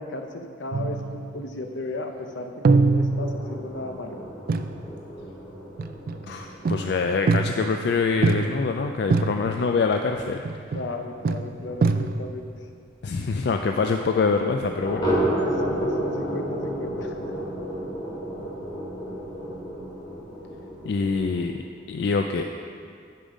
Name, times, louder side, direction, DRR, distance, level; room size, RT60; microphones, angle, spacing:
voice 1, 0.0-4.2 10.7-12.5 15.4-17.3, left 2 dB, 80° left, 4 dB, 0.7 m, -35 dB
sound 1, 0.7-1.6 2.6-3.8 4.5-4.8 5.8-6.3 6.6-7.8 8.2-8.8 9.1-9.7 10.4-11.0 11.2-12.4, right 3 dB, 50° right, 0.3 m, -24 dB
sound 2, 3.1-12.3 12.6-12.7 13.1-13.2 13.5-13.6 14.8-21.5, right 1 dB, 25° left, 2.2 m, -32 dB
voice 2, 6.3-10.4 13.0-15.1 20.8-21.5 21.9-22.4, left 4 dB, 60° left, 4 dB, 0.3 m, -25 dB
8.5 x 5.5 x 5.0 m, 2.3 s
head